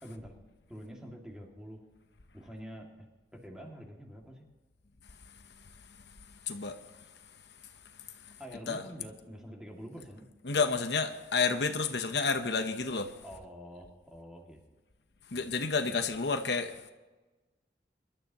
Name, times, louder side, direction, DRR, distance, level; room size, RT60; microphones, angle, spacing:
voice 1, 0.0-0.3 0.7-1.8 2.3-2.9 3.3-4.5 8.4-10.2 13.2-14.6 15.3-15.6, equal, 5° right, 2.3 m, -46 dB
voice 2, 6.5-6.8 8.3-8.4 8.7-8.8 10.4-13.2 15.3-16.9, left 4 dB, 80° left, 0.9 m, -30 dB
24.0 x 12.0 x 3.0 m
head